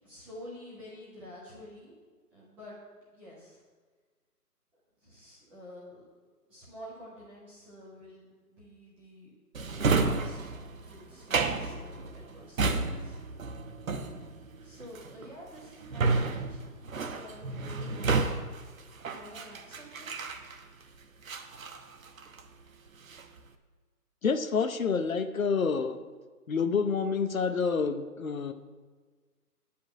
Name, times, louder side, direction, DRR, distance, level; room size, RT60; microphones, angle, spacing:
voice 1, 0.0-2.0 2.3-2.8 3.1-3.6 5.0-6.0 6.4-9.3 9.9-13.2 14.6-18.3 19.1-20.4, equal, 5° right, -9 dB, 0.9 m, -49 dB
Drawer open or close, 9.5-20.8 21.2-22.5 22.9-23.4, right 4 dB, 55° right, 1.0 m, -31 dB
voice 2, 24.2-26.0 26.5-28.5, left 5 dB, 55° left, 9 dB, 0.8 m, -28 dB
10.0 x 5.6 x 7.4 m, 1.4 s
figure-of-eight pair, 155°, 48 cm